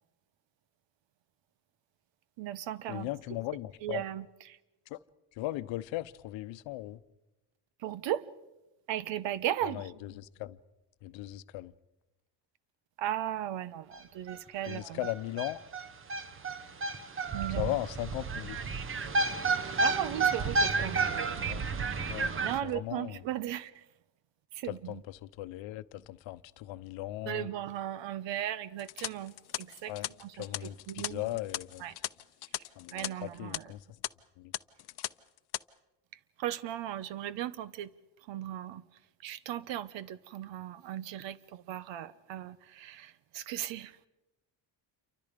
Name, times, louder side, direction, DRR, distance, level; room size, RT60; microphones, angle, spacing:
voice 1, 2.4-3.1 3.8-4.6 7.8-8.3 8.9-9.9 13.0-15.1 17.3-17.8 19.8-21.4 21.8-23.8 24.5-25.0 27.3-29.9 30.2-31.3 31.8-31.9 32.9-33.7 36.4-37.9 38.3-38.8 39.2-44.1, right 12 dB, 80° right, 1.1 m, -37 dB
voice 2, 2.9-4.1 4.9-5.0 5.4-7.0 9.7-10.6 11.0-11.7 14.7-15.6 17.6-18.6 21.4-21.6 22.1-22.3 22.6-23.2 24.7-27.5 29.9-30.1 30.4-31.8 32.8-33.8 34.4-34.5, left 16 dB, 90° left, 0.9 m, -38 dB
sound 1, 13.9-14.0 14.3-14.4 14.6-22.6, right 4 dB, 30° right, 1.0 m, -31 dB
sound 2, 28.8-33.1 33.4-33.6 34.0-34.1 34.5-35.1 35.4-35.6, left 16 dB, 60° left, 0.7 m, -38 dB
28.5 x 24.5 x 5.2 m
cardioid pair, 125°, 44 cm